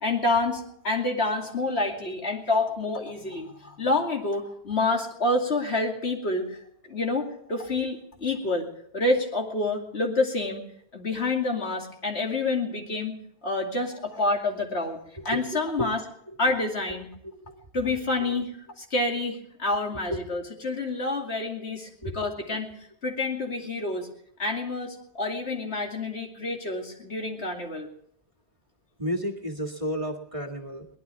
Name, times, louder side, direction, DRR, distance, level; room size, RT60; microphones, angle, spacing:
voice 1, 0.0-6.6 6.9-10.6 10.9-13.2 13.4-16.0 16.4-17.1 17.7-18.5 18.8-22.7 23.0-24.1 24.4-27.9, left 2 dB, 70° left, 1 dB, 2.9 m, -28 dB
voice 2, 17.2-17.6 18.2-18.3 20.1-20.2 22.0-22.1 29.0-30.9, equal, 30° right, 3 dB, 2.0 m, -32 dB
22.5 x 18.5 x 3.4 m, 0.67 s
omnidirectional pair, 1.2 m